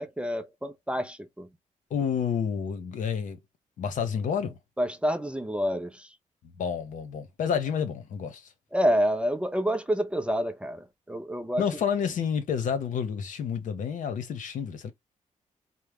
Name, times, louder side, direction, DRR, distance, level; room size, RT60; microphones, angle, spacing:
voice 1, 0.0-1.5 4.8-6.1 8.7-11.6, equal, 10° right, 0.4 m, -28 dB
voice 2, 1.9-3.4 3.8-4.6 6.4-8.5 11.6-14.9, left 7 dB, 70° left, 0.9 m, -29 dB
4.6 x 2.1 x 3.5 m
wide cardioid pair, 155°, 14 cm